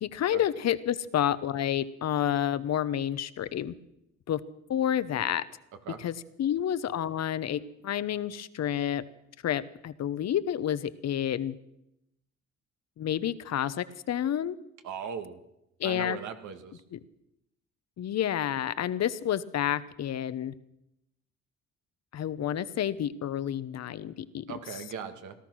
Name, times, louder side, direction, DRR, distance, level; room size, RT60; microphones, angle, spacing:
voice 1, 0.0-3.7 4.3-4.4 4.7-5.4 6.0-9.0 9.4-11.5 13.0-14.6 15.8-16.2 16.9-17.0 18.0-20.5 22.1-24.8, left 10 dB, 60° left, 15 dB, 0.9 m, -29 dB
voice 2, 14.8-15.4 15.8-16.8 24.5-25.3, right 7 dB, 80° right, 7 dB, 1.8 m, -38 dB
18.0 x 12.5 x 6.3 m, 0.84 s
cardioid pair, 90°, 30 cm